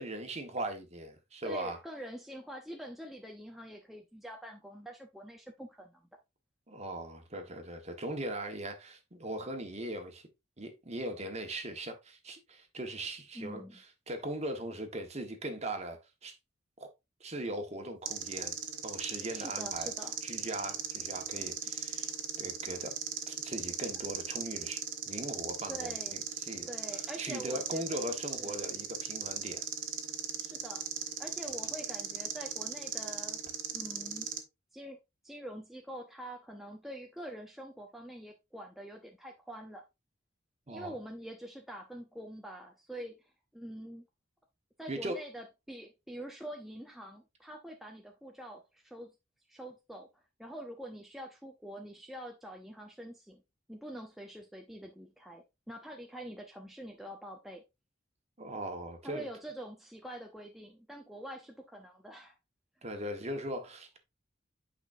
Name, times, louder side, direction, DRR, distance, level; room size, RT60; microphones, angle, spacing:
voice 1, 0.0-1.8 6.7-10.2 10.6-16.4 16.8-16.9 17.2-18.6 18.8-19.9 20.2-22.1 22.4-22.9 23.3-24.8 25.1-26.7 27.2-29.6 40.7-41.0 44.9-45.2 58.4-59.3 62.8-64.0, right 1 dB, 35° right, 1.3 m, -39 dB
voice 2, 1.4-6.1 13.3-13.8 19.3-20.7 25.7-26.2 26.7-27.8 28.4-28.6 30.4-30.8 31.2-33.4 33.7-34.3 34.7-35.0 35.2-39.8 40.7-44.1 44.8-49.1 49.5-50.1 50.4-53.4 53.7-57.6 59.0-62.4, right 1 dB, ahead, 0.7 m, -45 dB
sound 1, 18.0-34.4, right 8 dB, 70° right, 1.3 m, -38 dB
8.8 x 5.0 x 2.6 m
head